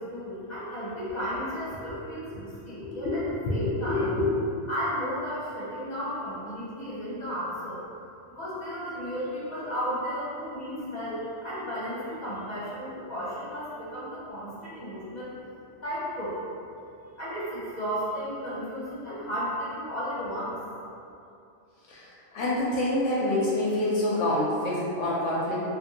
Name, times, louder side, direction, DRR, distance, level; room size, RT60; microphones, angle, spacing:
voice 1, 0.0-3.2 3.5-4.1 4.7-7.8 8.3-15.3 15.8-16.4 17.2-20.5, equal, 40° left, -10 dB, 1.0 m, -34 dB
voice 2, 2.8-3.2 3.5-4.3 21.9-25.6, left 1 dB, 85° left, -6 dB, 0.9 m, -27 dB
2.5 x 2.5 x 2.7 m, 2.7 s
omnidirectional pair, 1.2 m